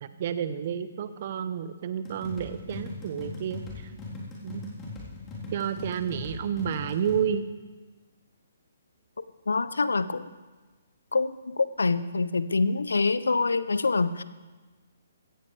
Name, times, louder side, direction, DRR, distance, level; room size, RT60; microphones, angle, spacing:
voice 1, 0.0-3.6 4.4-4.7 5.5-7.5, right 8 dB, 45° right, 12 dB, 0.9 m, -30 dB
sound 1, 2.0-7.2, left 3 dB, 20° left, 3.8 m, -39 dB
voice 2, 9.5-10.2 11.1-11.3 11.6-14.2, left 3 dB, 75° left, 15 dB, 0.6 m, -25 dB
16.5 x 15.0 x 3.4 m, 1.3 s
figure-of-eight pair, 130°, 0 cm